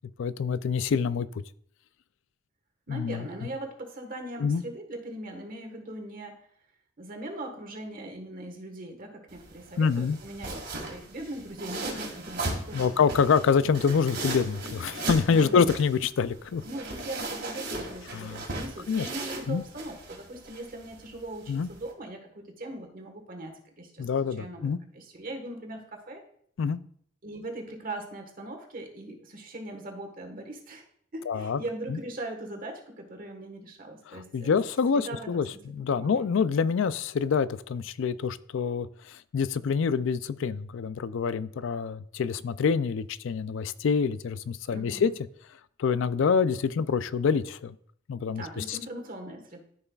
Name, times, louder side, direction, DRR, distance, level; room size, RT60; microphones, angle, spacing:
voice 1, 0.2-1.3 2.9-3.3 4.4-4.6 9.8-10.2 12.7-16.6 18.1-18.4 18.9-19.1 19.5-19.6 21.5-21.7 24.0-24.8 26.6-26.8 31.3-31.6 31.9-32.0 34.1-45.1 45.8-47.7 48.1-48.8, left 6 dB, 60° left, 0.4 m, -26 dB
voice 2, 2.9-6.4 7.0-13.1 15.3-15.8 16.6-26.2 27.2-30.9 31.1-34.6 34.9-35.5 35.9-36.3 44.7-45.1 48.3-49.6, right 1 dB, 40° right, 1.4 m, -40 dB
sound 1, 9.3-21.9, right 2 dB, 55° right, 2.2 m, -38 dB
13.5 x 5.6 x 2.3 m
head